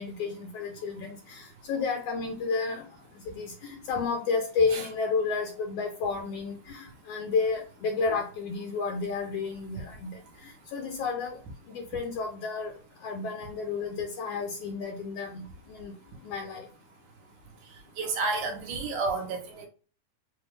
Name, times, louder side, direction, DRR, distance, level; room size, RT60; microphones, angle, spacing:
voice 1, 0.0-2.8 3.3-11.4 11.7-12.7 13.0-15.9 16.2-16.7, left 4 dB, 80° left, 1.4 m, -31 dB
voice 2, 18.0-19.7, right 3 dB, 75° right, 2.3 m, -30 dB
5.6 x 2.2 x 3.4 m
omnidirectional pair, 3.7 m